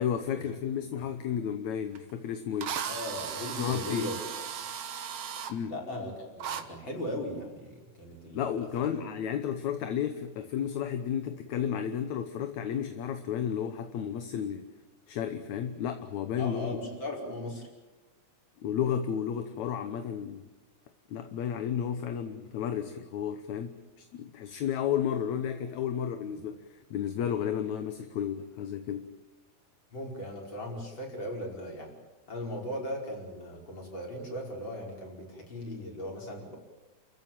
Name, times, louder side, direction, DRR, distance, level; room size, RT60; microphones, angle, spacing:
voice 1, 0.0-2.8 3.6-4.1 5.5-5.7 8.3-14.7 15.1-16.8 18.6-20.4 21.1-29.1, left 8 dB, 75° left, 8 dB, 2.4 m, -32 dB
Drill, 2.0-2.1 2.6-5.5 6.4-6.6, right 8 dB, 55° right, 2.1 m, -36 dB
voice 2, 2.9-4.2 5.7-9.0 16.4-17.7 29.9-31.9 32.3-36.6, left 1 dB, 40° left, 0 dB, 5.7 m, -38 dB
29.0 x 15.0 x 9.0 m, 1.2 s
omnidirectional pair, 3.4 m